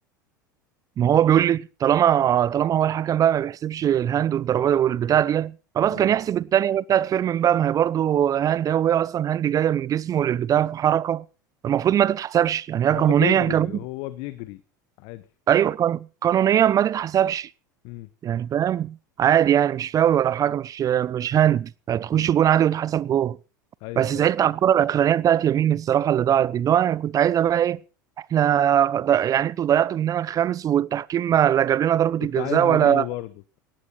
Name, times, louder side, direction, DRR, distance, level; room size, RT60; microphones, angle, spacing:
voice 1, 1.0-11.2 11.6-13.7 15.5-17.5 18.2-23.4 24.0-27.8 28.3-33.0, right 10 dB, 35° right, 0.6 m, -21 dB
voice 2, 12.9-14.6 15.0-15.3 17.8-18.1 22.1-22.3 23.8-24.5 32.2-33.3, left 18 dB, 55° left, 1.2 m, -33 dB
18.0 x 14.5 x 4.3 m
hypercardioid pair, 80°, 11 cm